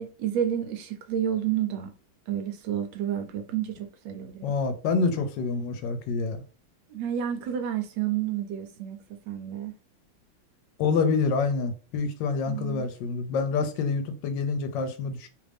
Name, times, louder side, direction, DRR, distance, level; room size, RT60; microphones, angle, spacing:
voice 1, 0.0-1.9 2.3-4.5 6.9-9.0 9.3-9.7 12.5-12.8, right 10 dB, 80° right, 1.2 m, -30 dB
voice 2, 4.4-6.4 10.8-15.3, left 4 dB, 75° left, 1.2 m, -27 dB
3.1 x 2.5 x 3.3 m
omnidirectional pair, 2.1 m